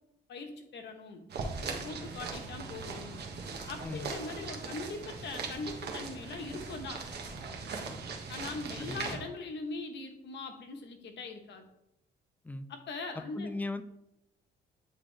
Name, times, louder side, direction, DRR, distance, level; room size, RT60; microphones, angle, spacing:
voice 1, 0.3-1.2 1.6-3.2 3.7-7.0 8.3-11.6 12.7-13.5, left 3 dB, 70° left, 5 dB, 1.1 m, -41 dB
sound 1, 1.3-9.2, right 4 dB, 60° right, 1.3 m, -40 dB
voice 2, 8.8-9.2 12.4-12.7 13.3-13.8, left 2 dB, 10° left, 10 dB, 0.5 m, -37 dB
9.1 x 3.6 x 3.3 m, 0.87 s
cardioid pair, 90°, 19 cm